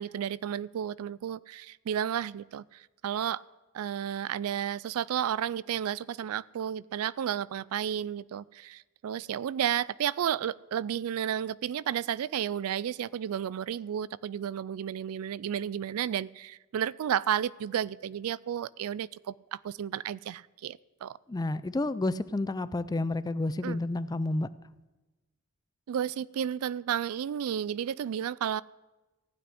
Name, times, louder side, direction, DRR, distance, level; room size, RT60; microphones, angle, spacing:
voice 1, 0.0-3.4 3.7-21.2 23.6-23.8 25.9-28.6, right 9 dB, 70° right, 0.3 m, -32 dB
voice 2, 21.3-24.5, left 2 dB, 20° left, 0.4 m, -30 dB
15.5 x 6.0 x 9.8 m
head